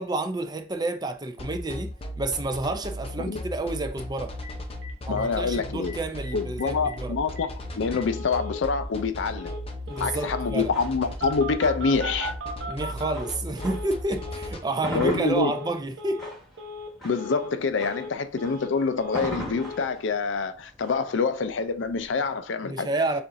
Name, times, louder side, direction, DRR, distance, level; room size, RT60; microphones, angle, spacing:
voice 1, 0.0-4.4 5.1-7.2 9.9-10.7 12.7-16.2 22.6-23.2, right 2 dB, 20° right, 0.4 m, -30 dB
sound 1, 1.4-14.6, left 1 dB, 30° left, 0.7 m, -36 dB
Telephone, 4.4-4.5 4.8-4.9 5.2-5.3 5.5-6.0 6.2-6.3 6.6-7.0 7.4-7.5 7.9-8.6 9.4-9.6 9.9-10.6 11.2-13.9 14.2-14.5 14.8-15.1 15.4-15.7 16.0-16.3 16.6-16.9 17.2-17.5 17.8-18.7 19.0-19.3 19.6-19.8, left 1 dB, 80° right, 0.9 m, -38 dB
voice 2, 5.1-5.9 6.3-9.5 10.0-12.3 14.9-15.5 17.0-22.9, left 4 dB, 85° left, 0.5 m, -26 dB
sound 2, 9.9-14.1 14.4-22.4, equal, ahead, 1.4 m, -39 dB
6.8 x 2.5 x 2.6 m
head